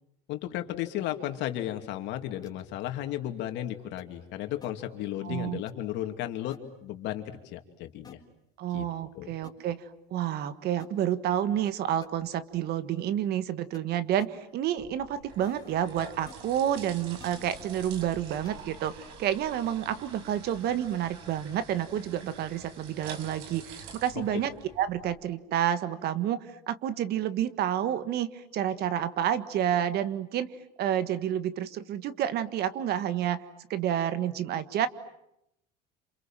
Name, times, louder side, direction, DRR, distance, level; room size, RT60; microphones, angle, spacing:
voice 1, 0.3-8.2 8.7-8.8 9.1-9.3, left 12 dB, 60° left, 6 dB, 2.8 m, -34 dB
sound 1, 2.4-2.6 4.0-4.1 4.6-4.7 5.7-5.8 6.5-6.6 8.0-8.1 9.4-9.5 10.8-10.9 11.6-11.7 12.0-12.1 13.7-13.8 14.2-14.3 15.4-15.8 16.3-16.4 17.2-17.6 18.4-18.6, left 5 dB, 20° left, 4.1 m, -49 dB
voice 2, 5.2-5.6 8.6-9.8 10.1-24.5 24.8-30.5 30.8-33.4 33.7-34.9, right 10 dB, 50° right, 13 dB, 1.6 m, -29 dB
sound 2, 14.8-25.1, right 6 dB, 80° right, 6.1 m, -47 dB
28.0 x 27.5 x 7.6 m, 0.83 s
cardioid pair, 130°, 20 cm